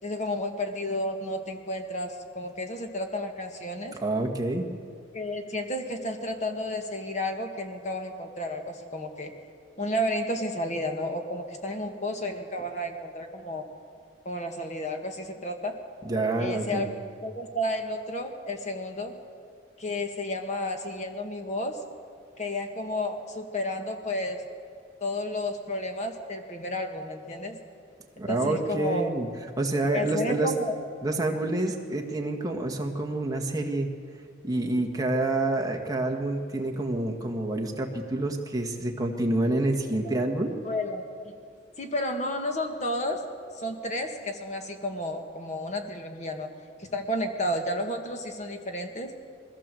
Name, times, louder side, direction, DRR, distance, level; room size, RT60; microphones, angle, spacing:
voice 1, 0.0-4.0 5.1-9.3 9.8-13.6 14.2-15.7 16.4-16.9 17.2-19.1 19.8-21.8 22.4-24.4 25.0-27.6 28.3-29.1 29.9-30.7 39.9-40.1 40.6-41.0 41.8-43.2 43.5-46.5 46.8-49.1, left 1 dB, 35° left, 4 dB, 1.8 m, -32 dB
voice 2, 4.0-4.7 16.0-16.9 28.2-29.3 29.6-30.5 31.0-33.9 34.4-40.5, right 2 dB, 20° right, 1 dB, 1.7 m, -28 dB
21.0 x 16.0 x 7.7 m, 2.3 s
head